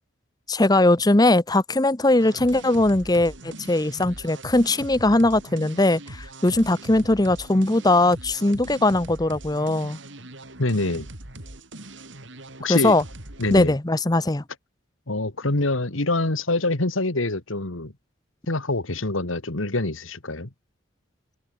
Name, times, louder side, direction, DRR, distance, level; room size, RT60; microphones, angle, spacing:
voice 1, 0.5-10.0 12.7-13.0 13.5-14.4, left 2 dB, 20° left, 0.9 m, -20 dB
sound 1, 2.2-13.7, right 1 dB, 65° right, 4.5 m, -41 dB
voice 2, 10.6-11.1 12.6-13.0 13.4-13.7 15.1-17.9 18.5-20.5, left 2 dB, 85° left, 2.3 m, -25 dB
open air
head